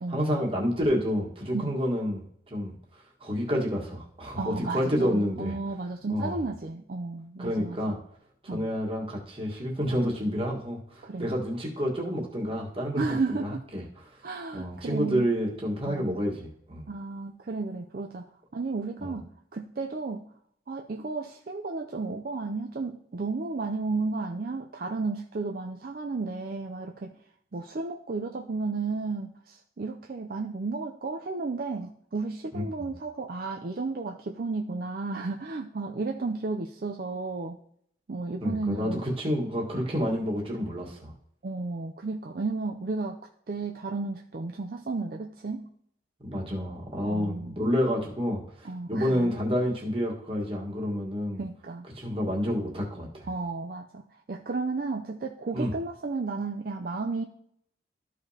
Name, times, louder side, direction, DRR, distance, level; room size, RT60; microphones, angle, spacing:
voice 1, 0.1-2.2 2.5-2.7 3.2-5.5 6.1-6.4 7.4-8.0 8.4-13.0 13.3-13.8 14.5-16.9 19.0-19.2 32.5-32.9 38.4-41.1 46.2-51.4 51.9-53.3 55.5-55.7, equal, 30° right, -2 dB, 1.6 m, -29 dB
voice 2, 4.4-7.9 8.5-8.7 11.0-11.3 13.0-13.6 14.2-15.3 15.8-16.2 16.9-18.3 18.5-20.3 20.7-27.1 27.5-37.6 38.1-39.0 41.4-43.2 43.5-45.7 47.1-47.6 48.6-49.3 51.4-51.9 53.2-54.0 54.3-57.2, right 3 dB, 50° right, 2 dB, 0.5 m, -33 dB
13.5 x 4.9 x 2.8 m, 0.68 s
head